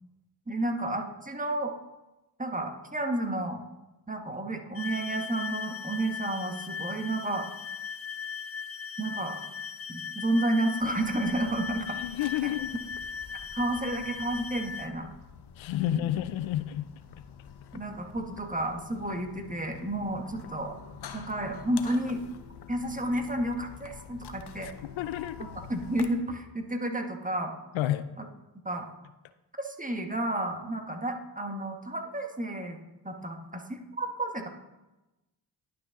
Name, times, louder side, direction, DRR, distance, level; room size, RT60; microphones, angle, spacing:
voice 1, 0.5-1.7 2.4-3.6 4.1-7.5 9.0-9.4 9.9-12.0 13.5-15.1 15.8-16.0 17.7-20.7 21.1-22.2 22.7-24.7 25.4-27.5 28.2-28.3 28.6-28.9 29.6-32.8 33.0-34.5, right 1 dB, 15° right, 4 dB, 1.3 m, -31 dB
sound 1, 4.7-14.9, left 6 dB, 30° left, 0.6 m, -38 dB
sound 2, 10.8-26.1, left 7 dB, 55° left, 0.9 m, -47 dB
voice 2, 11.9-12.7 15.6-16.9 24.6-25.5 27.7-28.1, left 13 dB, 75° left, 13 dB, 0.6 m, -30 dB
11.0 x 5.5 x 3.7 m, 1.0 s
supercardioid pair, 40°, 47 cm